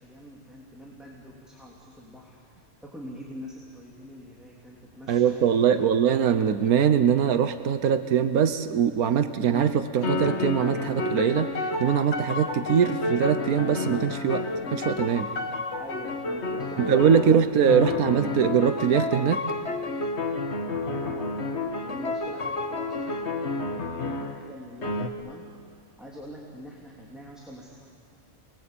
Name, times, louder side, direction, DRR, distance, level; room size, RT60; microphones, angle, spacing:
voice 1, 0.0-2.4 2.8-5.9 15.8-18.5 20.8-25.5 26.0-27.9, equal, ahead, -4 dB, 3.3 m, -45 dB
voice 2, 5.1-14.5 14.7-15.3 16.8-19.4, right 8 dB, 90° right, 9 dB, 1.4 m, -22 dB
sound 1, 9.5-9.7 10.0-24.5 24.8-25.1, left 3 dB, 50° left, 1.7 m, -30 dB
29.5 x 21.5 x 8.6 m, 2.2 s
omnidirectional pair, 1.5 m